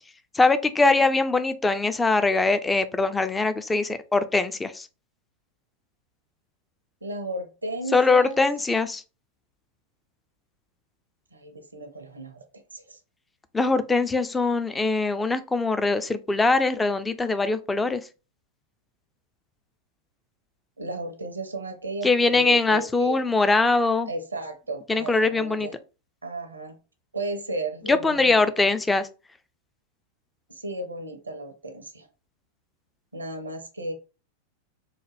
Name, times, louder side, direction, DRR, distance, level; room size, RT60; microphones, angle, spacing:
voice 1, 0.3-4.9 7.9-9.0 13.5-18.1 22.0-24.1 24.9-25.7 27.9-29.1, left 3 dB, 10° left, 0.4 m, -22 dB
voice 2, 7.0-8.5 11.3-13.0 20.8-23.2 24.1-25.7 26.2-26.8 27.1-28.7 30.5-32.1 33.1-33.9, right 2 dB, 80° right, 0.6 m, -34 dB
3.9 x 2.1 x 3.3 m
figure-of-eight pair, 90°, 0 cm